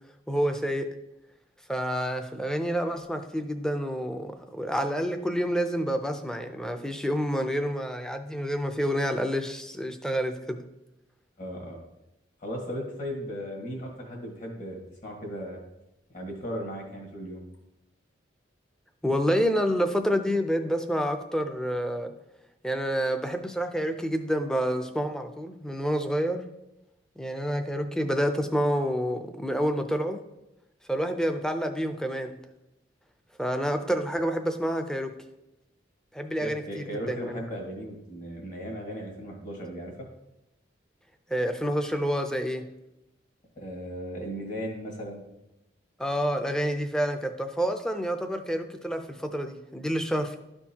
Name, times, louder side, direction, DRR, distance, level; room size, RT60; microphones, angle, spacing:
voice 1, 0.3-0.9 1.7-10.6 19.0-22.1 22.6-26.4 27.2-30.2 30.9-32.4 33.4-35.1 36.1-37.4 41.3-42.6 46.0-50.4, equal, 5° left, 6 dB, 0.5 m, -28 dB
voice 2, 11.4-11.8 12.4-15.6 16.1-17.4 36.4-40.1 43.6-45.2, equal, 45° left, 0 dB, 1.8 m, -36 dB
12.5 x 4.5 x 2.9 m, 0.91 s
head